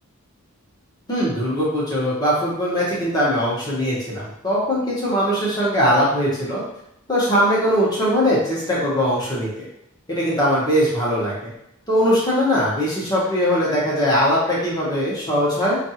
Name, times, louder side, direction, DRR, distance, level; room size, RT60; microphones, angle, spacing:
voice 1, 1.1-6.6 7.1-9.7 10.1-11.5 11.9-15.8, equal, 20° left, -6 dB, 1.0 m, -20 dB
4.5 x 2.6 x 2.8 m, 0.79 s
head